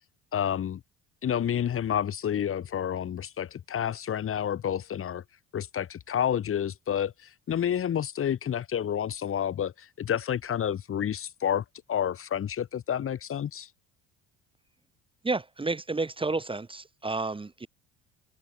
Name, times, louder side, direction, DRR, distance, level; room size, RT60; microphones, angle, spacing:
voice 1, 0.3-0.8 1.2-5.2 5.5-13.7, left 9 dB, 45° left, 1.4 m, -29 dB
voice 2, 15.2-17.7, right 3 dB, 15° right, 1.4 m, -31 dB
supercardioid pair, 80°, 31 cm